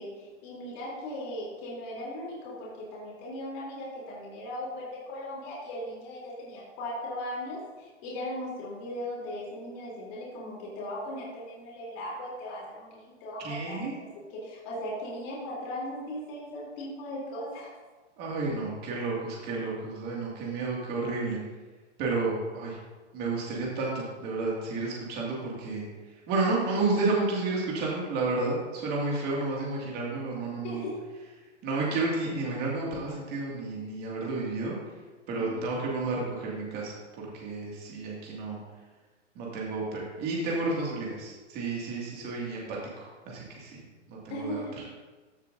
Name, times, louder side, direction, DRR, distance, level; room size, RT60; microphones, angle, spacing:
voice 1, 0.0-13.9 14.3-17.7 30.6-31.0 35.3-35.5 44.3-44.8, left 1 dB, 30° left, -5 dB, 3.1 m, -38 dB
voice 2, 13.4-13.9 18.2-21.4 22.0-22.8 23.1-30.9 31.6-34.8 35.3-38.6 39.4-43.8 44.1-44.6, right 3 dB, 25° right, -3 dB, 2.1 m, -31 dB
14.5 x 7.2 x 2.6 m, 1.3 s
hypercardioid pair, 145°, 37 cm